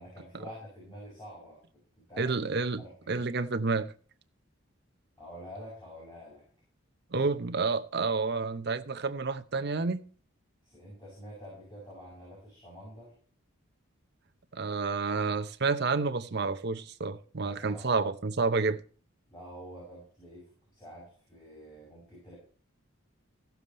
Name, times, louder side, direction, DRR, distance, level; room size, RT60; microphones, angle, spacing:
voice 1, 0.0-2.3 2.8-3.3 5.2-6.4 7.1-7.3 10.6-13.1 17.4-18.1 19.3-22.3, equal, 20° left, 6.5 m, -48 dB
voice 2, 2.2-3.9 7.1-10.0 14.5-18.8, right 4 dB, 50° right, 0.7 m, -29 dB
16.0 x 7.1 x 4.2 m
head